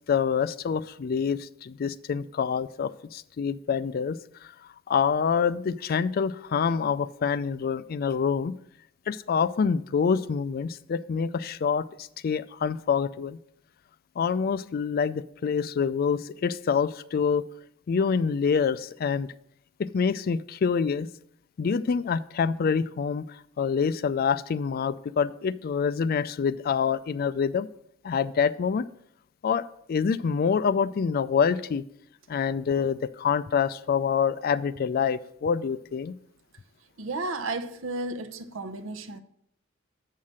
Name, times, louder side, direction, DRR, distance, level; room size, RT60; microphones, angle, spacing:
voice 1, 0.1-4.2 4.9-8.5 9.1-13.4 14.2-17.4 17.9-19.3 19.8-21.1 21.6-23.3 23.6-27.7 28.0-28.9 29.4-31.8 32.3-36.1, left 6 dB, 50° left, 0.3 m, -26 dB
voice 2, 37.0-39.2, right 2 dB, 85° right, 0.7 m, -33 dB
7.5 x 5.6 x 6.2 m
head